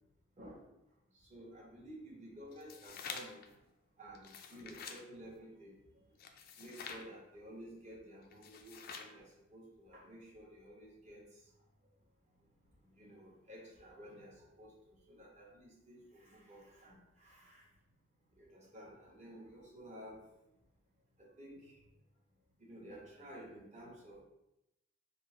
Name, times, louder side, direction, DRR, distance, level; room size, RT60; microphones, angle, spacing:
voice 1, 1.1-3.4 4.0-5.7 6.6-11.2 13.0-17.6 18.4-20.2 21.2-21.8 22.6-24.2, equal, 35° right, -3 dB, 1.0 m, -53 dB
sound 1, 2.5-3.5 4.1-5.0 6.2-7.1 8.3-9.2, left 6 dB, 50° left, 0.4 m, -47 dB
3.8 x 2.1 x 3.7 m, 0.88 s
head